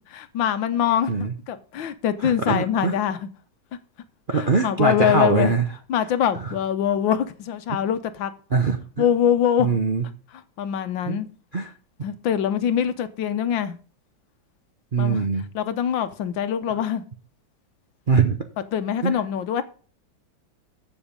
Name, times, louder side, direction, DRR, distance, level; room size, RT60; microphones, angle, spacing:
voice 1, 0.1-3.3 4.3-5.5 5.9-8.3 9.0-9.7 10.6-11.3 12.0-13.8 15.0-15.3 15.6-17.0 18.7-19.6, left 9 dB, 75° left, 1.6 m, -24 dB
voice 2, 2.2-2.9 4.3-5.6 6.4-6.5 8.5-9.0 9.6-10.0 11.1-11.2 11.5-11.7 14.9-15.5 18.1-18.4 19.0-19.2, right 4 dB, 45° right, 0.6 m, -22 dB
14.5 x 5.1 x 5.1 m
omnidirectional pair, 2.1 m